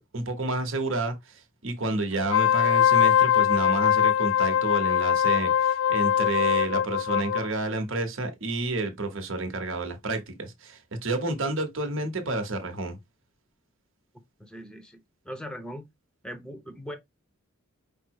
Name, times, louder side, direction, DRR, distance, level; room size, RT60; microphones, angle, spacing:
voice 1, 0.0-13.0, right 2 dB, 60° right, 1.0 m, -30 dB
Wind instrument woodwind instrument, 2.2-7.5, left 9 dB, 60° left, 0.3 m, -22 dB
voice 2, 14.4-15.0 15.2-15.9 16.2-17.0, equal, 5° left, 0.7 m, -39 dB
5.2 x 2.0 x 4.6 m
head